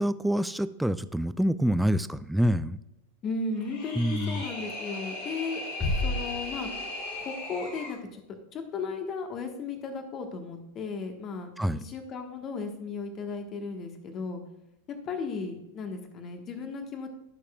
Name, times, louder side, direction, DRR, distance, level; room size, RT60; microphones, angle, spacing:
voice 1, 0.0-2.8 4.0-4.4 11.6-11.8, equal, ahead, 14 dB, 0.3 m, -26 dB
voice 2, 3.2-5.6 6.0-6.7 7.2-8.2 8.5-14.4 14.9-17.1, left 4 dB, 30° left, 5 dB, 1.4 m, -35 dB
sound 1, 3.5-8.0, left 2 dB, 55° left, 3.1 m, -38 dB
sound 2, 5.8-7.4, left 2 dB, 15° left, 1.6 m, -32 dB
16.0 x 6.6 x 2.4 m, 0.88 s
figure-of-eight pair, 90°, 0 cm